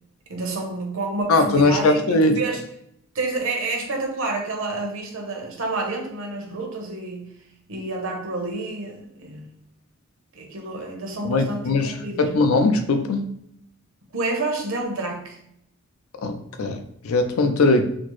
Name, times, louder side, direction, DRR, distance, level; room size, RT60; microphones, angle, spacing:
voice 1, 0.3-2.6 3.1-7.3 7.7-9.5 10.3-12.3 14.1-15.4, right 2 dB, 65° right, 1 dB, 0.8 m, -29 dB
voice 2, 1.3-2.4 11.2-13.3 16.2-17.8, left 2 dB, 75° left, 7 dB, 0.4 m, -20 dB
4.1 x 2.0 x 3.0 m, 0.73 s
head